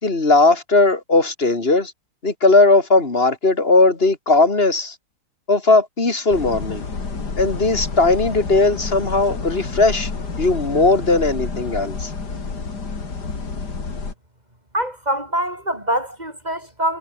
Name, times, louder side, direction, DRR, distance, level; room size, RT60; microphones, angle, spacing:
voice 1, 0.0-1.9 2.2-4.9 5.5-6.9 7.4-10.1 10.4-12.1, left 3 dB, 30° left, 2.9 m, -17 dB
sound 1, 6.3-14.1, left 4 dB, 55° left, 3.7 m, -29 dB
voice 2, 14.7-17.0, right 1 dB, 20° right, 6.6 m, -24 dB
omnidirectional pair, 2.2 m